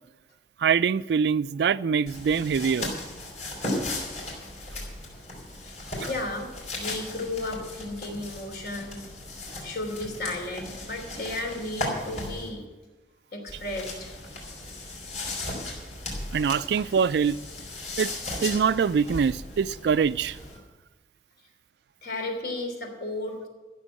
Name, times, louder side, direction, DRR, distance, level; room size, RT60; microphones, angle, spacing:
voice 1, 0.6-2.9 6.0-6.1 16.3-17.4 18.0-18.1 18.4-20.4, right 6 dB, 70° right, 0.3 m, -24 dB
sound 1, 2.1-12.5 13.5-20.6, left 2 dB, 40° left, 4.5 m, -36 dB
voice 2, 6.0-6.5 6.8-9.1 9.6-12.6 13.3-14.1 22.0-23.5, left 2 dB, 60° left, 3.2 m, -34 dB
14.5 x 7.2 x 8.5 m
head